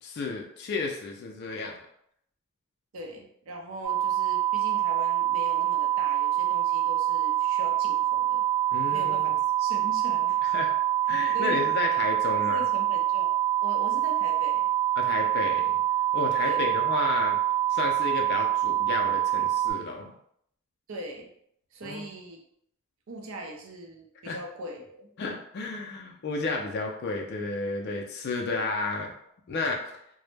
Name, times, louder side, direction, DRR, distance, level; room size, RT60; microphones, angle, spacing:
voice 1, 0.0-1.8 8.7-9.4 10.4-10.7 11.1-12.6 15.0-15.8 16.1-17.4 17.7-20.1 21.8-22.1 24.2-24.4 25.2-29.1 29.5-29.8, left 3 dB, 50° left, 2 dB, 0.3 m, -32 dB
voice 2, 2.9-8.4 8.9-9.3 9.6-10.4 11.3-11.7 12.3-13.3 13.6-14.7 16.5-16.7 20.9-21.3 21.7-22.4 23.1-25.1 28.5-28.7, right 1 dB, 65° right, 1 dB, 0.5 m, -40 dB
sound 1, 3.8-19.7, right 12 dB, 15° right, 0.8 m, -25 dB
2.0 x 2.0 x 3.1 m, 0.71 s
head